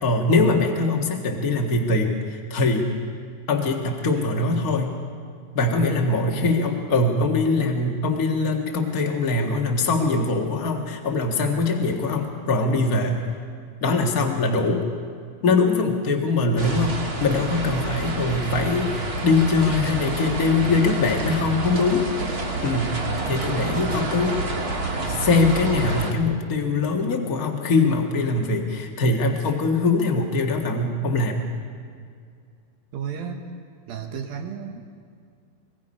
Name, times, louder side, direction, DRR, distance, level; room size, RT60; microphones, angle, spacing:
voice 1, 0.0-2.9 3.5-4.9 5.5-13.2 13.8-14.8 15.4-22.1 22.6-23.0 23.2-24.4 25.0-31.4, left 3 dB, 85° left, 1 dB, 0.8 m, -22 dB
voice 2, 6.3-6.6 32.9-33.4 33.9-34.8, right 7 dB, 70° right, 4 dB, 3.2 m, -32 dB
sound 1, 16.6-26.1, right 2 dB, 40° right, 1.4 m, -28 dB
24.0 x 22.0 x 5.4 m, 2.2 s
omnidirectional pair, 4.5 m